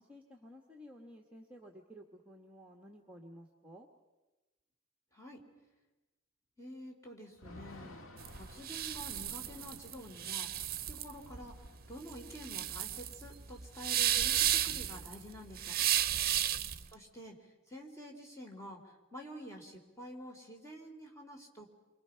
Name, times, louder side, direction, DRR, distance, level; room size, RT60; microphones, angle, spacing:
voice 1, 0.0-3.9 16.5-16.9, equal, 5° right, 1 dB, 1.5 m, -54 dB
voice 2, 5.1-5.5 6.6-10.5 10.9-15.8 16.9-21.6, equal, 15° left, 0 dB, 3.6 m, -49 dB
Thunder / Rain, 7.4-15.2 15.5-15.6 15.9-17.3, left 1 dB, 75° left, 1.6 m, -57 dB
sound 1, 8.2-16.9, right 11 dB, 45° right, 0.8 m, -33 dB
29.0 x 25.0 x 5.8 m, 1.1 s
head